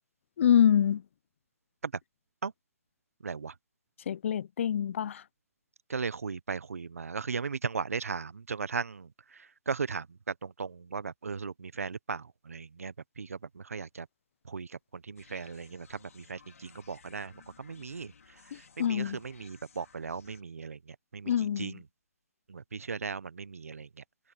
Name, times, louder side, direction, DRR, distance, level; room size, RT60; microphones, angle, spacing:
voice 1, 0.4-1.0 4.1-5.2 18.5-19.2 21.3-21.8, left 9 dB, 60° left, 0.4 m, -26 dB
voice 2, 3.2-3.5 5.9-14.1 14.4-18.1 18.5-21.8 22.5-23.9, right 5 dB, 90° right, 0.9 m, -37 dB
sound 1, 15.2-20.4, left 5 dB, 80° left, 3.3 m, -58 dB
hypercardioid pair, 140°, 8 cm